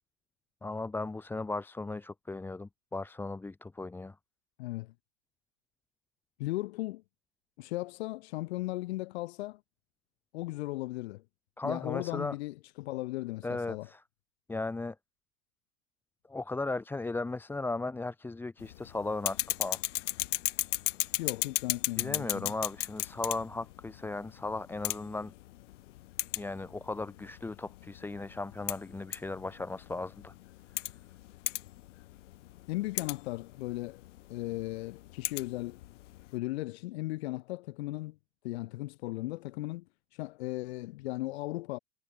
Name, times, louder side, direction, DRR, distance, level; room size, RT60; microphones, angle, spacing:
voice 1, 0.6-4.2 11.6-12.3 13.4-14.0 14.5-15.0 16.3-19.8 22.0-25.3 26.4-30.3, left 3 dB, 5° left, 0.6 m, -36 dB
voice 2, 4.6-4.9 6.4-7.0 7.6-9.6 10.3-11.2 11.6-13.9 21.2-22.5 32.7-34.0 34.3-35.8 36.3-38.2 38.4-39.8 40.1-41.8, left 19 dB, 60° left, 0.8 m, -36 dB
sound 1, 18.6-36.3, left 16 dB, 80° left, 0.5 m, -37 dB
hypercardioid pair, 105°, 36 cm